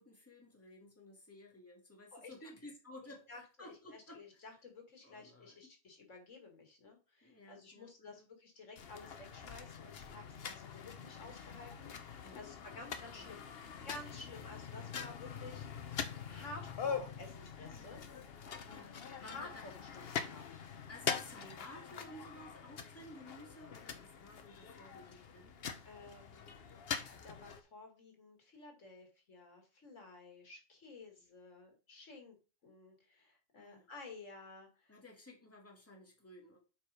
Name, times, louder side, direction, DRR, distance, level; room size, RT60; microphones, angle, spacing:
voice 1, 0.0-4.5 5.0-5.6 7.2-8.3 12.2-12.4 13.1-13.3 17.6-18.0 18.6-19.6 20.9-25.6 33.6-33.9 34.9-36.6, left 1 dB, 10° left, 0 dB, 1.9 m, -55 dB
voice 2, 3.9-13.4 13.8-15.9 16.3-18.0 19.2-20.4 25.8-26.6 27.0-32.4 32.6-34.9, left 3 dB, 90° left, 3 dB, 2.5 m, -53 dB
sound 1, 8.8-27.6, left 6 dB, 55° left, 1.0 m, -44 dB
7.5 x 4.5 x 4.9 m, 0.33 s
omnidirectional pair, 1.2 m